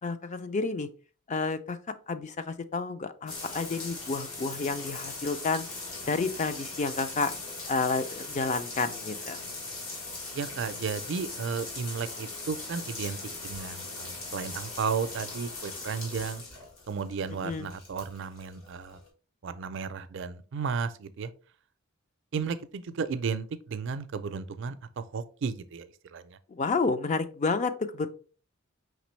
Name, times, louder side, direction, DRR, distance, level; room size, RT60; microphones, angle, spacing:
voice 1, 0.0-0.9 1.3-1.8 2.1-5.6 6.1-7.3 7.7-9.4 17.4-17.7 26.6-28.1, left 4 dB, 35° left, 0.4 m, -30 dB
sound 1, 3.3-19.1, left 3 dB, 75° left, 1.5 m, -40 dB
voice 2, 10.3-13.2 13.4-16.4 16.9-19.0 19.4-21.3 22.3-26.4, right 5 dB, 60° right, 0.4 m, -34 dB
5.0 x 3.3 x 3.1 m
head